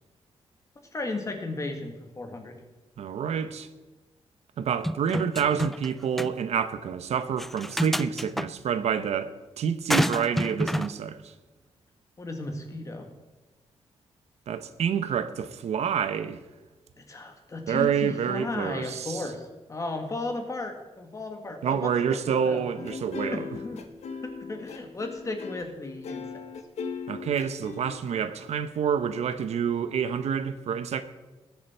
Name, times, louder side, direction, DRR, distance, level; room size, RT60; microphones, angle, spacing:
voice 1, 0.9-2.5 12.2-13.1 17.1-22.2 22.4-22.6 23.3-23.8 24.2-26.4, left 2 dB, 30° left, 1.9 m, -35 dB
voice 2, 3.0-3.7 4.6-11.2 14.5-16.4 17.7-19.2 21.6-23.5 27.1-31.0, right 7 dB, 80° right, 0.8 m, -28 dB
sound 1, 4.8-5.9 6.2-6.3 7.4-8.5 9.9-10.9, equal, ahead, 0.3 m, -28 dB
sound 2, 22.8-28.5, left 5 dB, 80° left, 1.1 m, -38 dB
19.0 x 7.5 x 4.5 m
wide cardioid pair, 125°, 11 cm